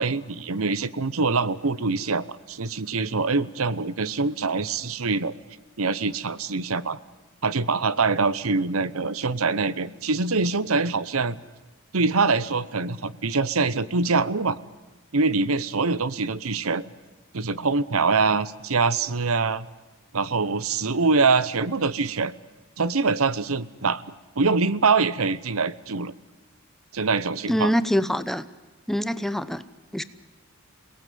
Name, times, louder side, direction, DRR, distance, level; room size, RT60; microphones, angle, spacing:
voice 1, 0.0-5.3 5.8-7.0 7.4-11.4 11.9-14.6 15.1-16.8 17.3-19.7 20.1-22.3 22.8-24.0 24.4-26.1 26.9-27.7, right 4 dB, 70° right, 17 dB, 0.9 m, -24 dB
voice 2, 27.5-28.4 28.9-29.6 29.9-30.0, equal, ahead, 13 dB, 0.8 m, -24 dB
28.0 x 18.5 x 9.4 m, 1.2 s
head